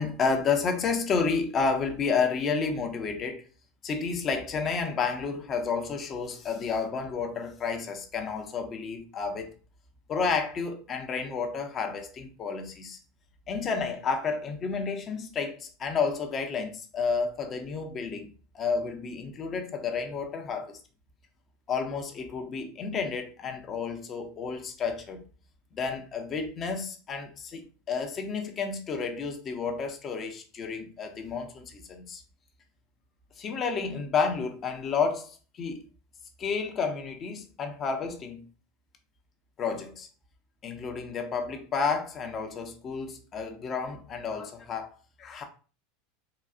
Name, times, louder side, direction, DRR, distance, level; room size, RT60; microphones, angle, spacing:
voice 1, 0.0-3.5 3.8-9.5 10.1-13.0 13.5-20.8 21.7-25.2 25.7-32.2 33.4-35.8 36.4-38.5 39.6-40.1 40.6-44.9 45.2-45.4, left 5 dB, 35° left, 0.8 m, -31 dB
4.0 x 2.3 x 2.4 m
hypercardioid pair, 105°, 0 cm